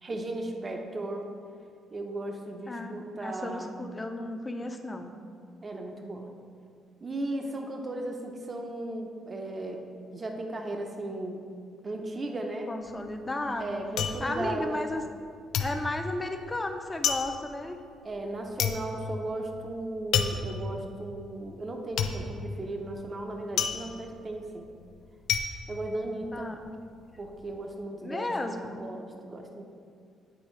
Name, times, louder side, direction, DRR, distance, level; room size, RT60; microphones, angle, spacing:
voice 1, 0.0-1.3 1.9-3.8 5.6-6.3 7.0-9.8 10.1-11.4 11.8-12.7 13.6-14.8 18.0-24.7 25.7-26.5 27.2-28.3 28.7-29.6, right 2 dB, 35° right, 3 dB, 0.7 m, -36 dB
voice 2, 2.7-5.1 12.7-13.8 14.2-15.0 15.6-17.8 26.3-26.6 28.0-28.8, left 2 dB, 20° left, 5 dB, 0.6 m, -34 dB
sound 1, 12.8-15.2 15.5-26.7 27.0-27.6, left 7 dB, 85° left, 0.4 m, -32 dB
8.9 x 4.2 x 3.2 m, 2.2 s
cardioid pair, 90°, 0 cm